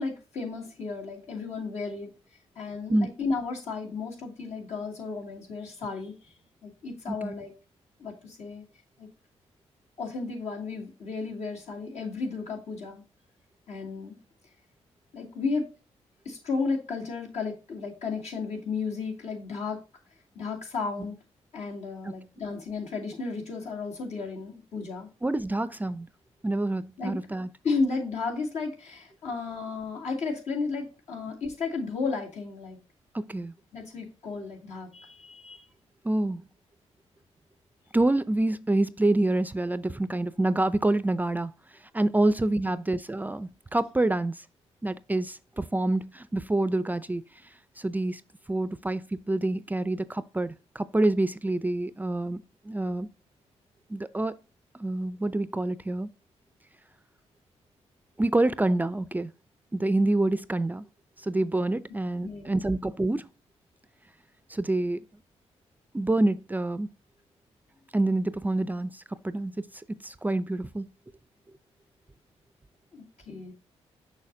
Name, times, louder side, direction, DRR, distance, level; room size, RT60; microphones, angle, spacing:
voice 1, 0.0-2.1 2.6-6.1 6.6-7.5 8.0-8.6 9.0-9.1 10.0-13.0 13.7-14.2 15.1-15.7 16.2-19.8 20.4-21.2 21.5-25.1 27.0-27.2 27.6-32.8 33.7-35.6 62.2-62.7 72.9-73.5, left 4 dB, 75° left, 2.4 m, -33 dB
voice 2, 25.2-26.1 26.4-27.5 33.1-33.5 36.0-36.4 37.9-41.5 41.9-44.4 44.8-47.2 47.8-48.2 48.5-53.1 53.9-54.4 54.8-56.1 58.2-59.3 59.7-60.8 61.2-63.3 64.5-65.0 65.9-66.9 67.9-70.9, right 2 dB, 15° right, 0.4 m, -27 dB
6.4 x 6.0 x 2.7 m
cardioid pair, 80°, 12 cm